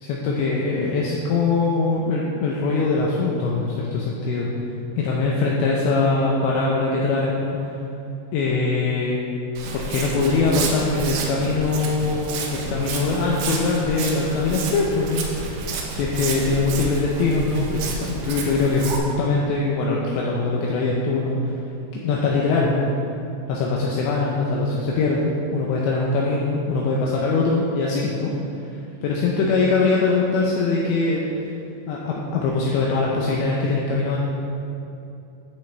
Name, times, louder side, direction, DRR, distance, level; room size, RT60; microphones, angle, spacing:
voice 1, 0.0-4.5 5.0-7.7 8.3-9.2 9.7-15.3 15.9-21.6 21.9-22.9 23.5-28.6 29.0-31.2 31.9-34.2, left 3 dB, 80° left, -3 dB, 2.7 m, -22 dB
Walk footsteps, 9.6-19.0, right 4 dB, 75° right, 2.9 m, -30 dB
11.0 x 6.9 x 3.3 m, 2.7 s
omnidirectional pair, 5.9 m